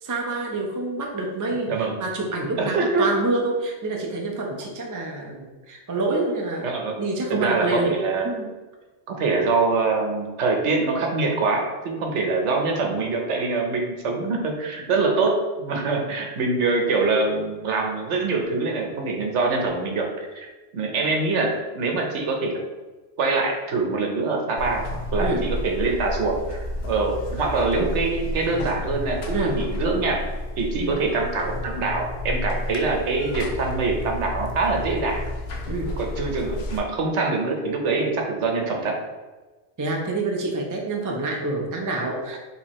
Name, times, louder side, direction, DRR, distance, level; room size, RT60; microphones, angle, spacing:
voice 1, 0.0-1.7 2.0-6.7 7.0-7.9 8.2-8.5 25.2-25.5 29.3-29.6 30.8-31.0 35.7-36.0 39.8-42.4, right 2 dB, 25° right, 0 dB, 0.4 m, -27 dB
voice 2, 2.6-3.1 6.6-6.9 7.3-8.3 9.1-20.5 20.7-22.6 23.2-30.2 30.6-35.2 36.0-39.0, right 3 dB, 75° right, 1 dB, 1.1 m, -24 dB
Buzz, 24.6-36.8, left 1 dB, 65° left, 0.9 m, -31 dB
4.4 x 3.4 x 3.0 m, 1.2 s
omnidirectional pair, 1.2 m